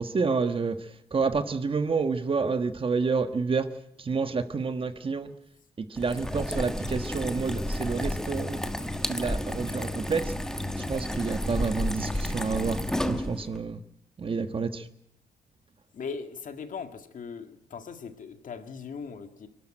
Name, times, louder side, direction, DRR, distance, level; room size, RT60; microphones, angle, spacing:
voice 1, 0.0-3.7 4.0-5.4 5.8-8.6 9.0-10.3 10.8-13.8 14.2-14.9, right 4 dB, 35° right, 10 dB, 1.4 m, -29 dB
sound 1, 6.0-13.6, left 1 dB, 5° left, 1.4 m, -31 dB
voice 2, 15.9-19.5, left 5 dB, 50° left, 7 dB, 2.2 m, -39 dB
27.5 x 12.5 x 9.1 m, 0.78 s
cardioid pair, 120°, 17 cm